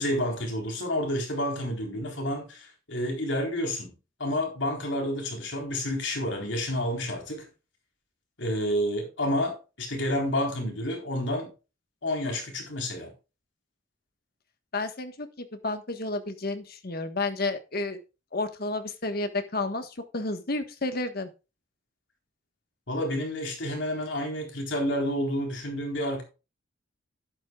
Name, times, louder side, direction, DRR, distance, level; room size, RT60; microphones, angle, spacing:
voice 1, 0.0-3.9 4.2-7.5 8.4-11.5 12.0-13.1 22.9-26.2, left 1 dB, 75° left, 4.1 m, -29 dB
voice 2, 14.7-15.3 15.6-18.0 18.3-21.3, left 2 dB, 55° left, 1.5 m, -31 dB
11.5 x 11.0 x 2.4 m
head